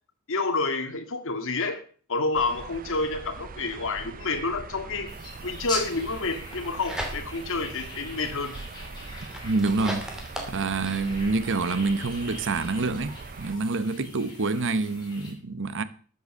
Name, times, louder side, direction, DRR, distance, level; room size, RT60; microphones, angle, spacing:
voice 1, 0.3-1.8 2.1-5.1 5.4-8.6, left 3 dB, 65° left, 2.1 m, -29 dB
sound 1, 2.3-13.6, right 4 dB, 40° right, 0.6 m, -42 dB
sound 2, 5.1-15.3, left 2 dB, 20° left, 6.3 m, -42 dB
sound 3, 6.5-7.5 8.0-11.2, equal, 5° right, 2.6 m, -38 dB
voice 2, 9.4-10.1 10.5-15.8, right 3 dB, 60° right, 1.0 m, -27 dB
13.5 x 8.0 x 6.6 m
head